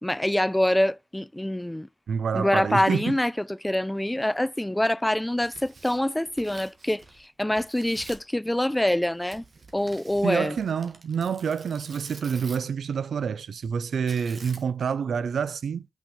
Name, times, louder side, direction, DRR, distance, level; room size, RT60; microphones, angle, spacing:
voice 1, 0.0-1.9 2.3-3.3 3.6-7.0 7.4-9.4 9.7-10.6, left 1 dB, 10° left, 0.3 m, -25 dB
voice 2, 2.1-3.2 10.2-15.9, right 6 dB, 85° right, 0.3 m, -28 dB
Tearing, 5.2-7.3 7.5-8.3 9.3-12.8 14.1-14.9, right 3 dB, 60° right, 1.5 m, -48 dB
6.1 x 5.3 x 3.1 m
cardioid pair, 50°, 0 cm